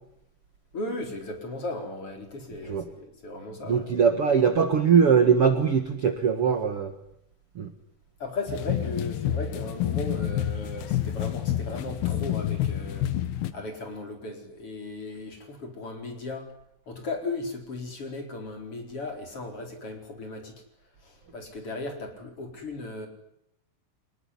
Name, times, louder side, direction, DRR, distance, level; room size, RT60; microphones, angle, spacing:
voice 1, 0.7-3.9 8.2-13.1 13.5-16.5 16.9-20.5 21.0-23.1, left 2 dB, 30° left, 4 dB, 4.7 m, -36 dB
voice 2, 3.7-6.9 7.5-7.7, right 6 dB, 70° right, 8 dB, 1.3 m, -21 dB
sound 1, 8.5-13.5, left 12 dB, 65° left, 2.8 m, -28 dB
26.0 x 20.5 x 9.9 m, 0.77 s
omnidirectional pair, 5.5 m